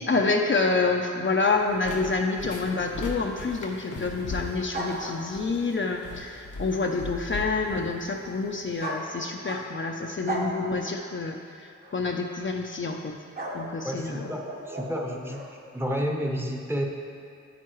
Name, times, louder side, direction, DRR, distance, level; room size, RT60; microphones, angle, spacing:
voice 1, 0.0-13.1 13.5-14.3, left 3 dB, 40° left, 1 dB, 0.6 m, -28 dB
sound 1, 1.4-8.9, left 2 dB, 85° left, 1.0 m, -39 dB
sound 2, 4.7-5.6 8.8-9.9 10.2-10.6 11.8-12.0 13.4-15.5, right 2 dB, 30° right, 1.1 m, -36 dB
voice 2, 13.8-16.8, equal, 10° right, 0 dB, 0.9 m, -31 dB
9.2 x 8.5 x 3.1 m, 2.5 s
wide cardioid pair, 90°, 30 cm